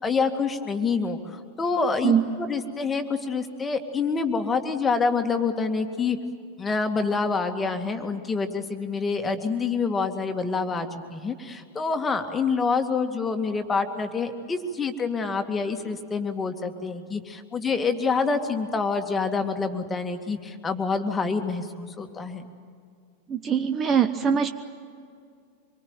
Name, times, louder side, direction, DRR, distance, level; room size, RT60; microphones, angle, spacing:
voice 1, 0.0-6.2 6.6-22.5, left 4 dB, 15° left, 6 dB, 2.2 m, -27 dB
voice 2, 23.3-24.5, right 8 dB, 25° right, 10 dB, 1.1 m, -22 dB
25.5 x 23.5 x 9.0 m, 2.2 s
figure-of-eight pair, 90°, 0 cm